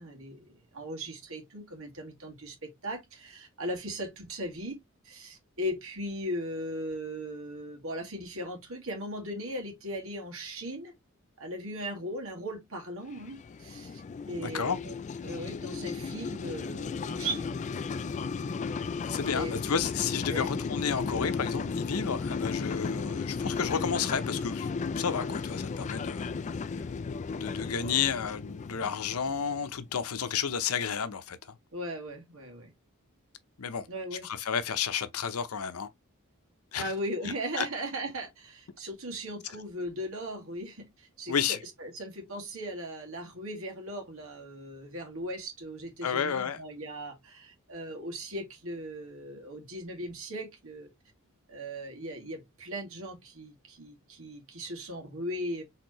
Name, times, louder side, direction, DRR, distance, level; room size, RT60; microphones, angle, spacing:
voice 1, 0.0-4.8 5.0-10.9 11.4-14.0 14.3-14.9 15.2-17.6 19.2-19.5 20.3-20.5 31.7-32.7 33.9-34.3 36.8-50.9 51.5-55.6, equal, 70° right, 2.0 m, -38 dB
sound 1, 13.1-29.8, left 5 dB, 35° left, 0.3 m, -35 dB
voice 2, 14.4-14.8 19.1-24.7 25.0-26.3 27.3-31.5 33.6-33.9 34.2-35.9 36.7-36.9 37.6-37.7 41.3-41.6 46.0-46.6, left 7 dB, 85° left, 0.7 m, -31 dB
4.5 x 3.6 x 3.0 m
head